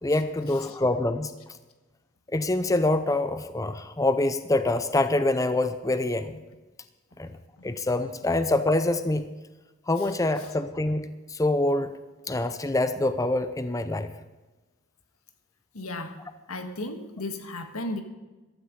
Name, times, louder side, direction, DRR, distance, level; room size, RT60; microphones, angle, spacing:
voice 1, 0.0-1.3 2.3-6.4 7.2-7.4 7.6-9.3 9.9-12.0 12.3-14.1, left 2 dB, 15° left, 11 dB, 0.6 m, -25 dB
voice 2, 15.7-16.2 16.5-18.0, left 2 dB, 90° left, 7 dB, 1.7 m, -34 dB
15.5 x 12.5 x 5.3 m, 1.2 s
head